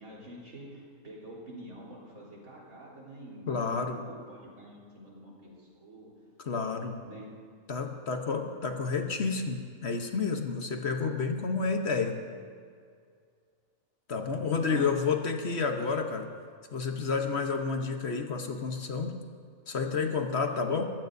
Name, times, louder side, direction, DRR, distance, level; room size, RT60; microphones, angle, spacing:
voice 1, 0.0-6.1 7.0-7.3 14.5-14.9 20.5-20.8, right 1 dB, 85° right, -4 dB, 4.2 m, -47 dB
voice 2, 3.5-4.0 6.4-7.0 7.7-12.2 14.1-16.3 16.7-19.2 19.7-20.9, left 4 dB, 50° left, 4 dB, 1.2 m, -30 dB
22.5 x 15.0 x 2.7 m, 2.2 s
omnidirectional pair, 1.5 m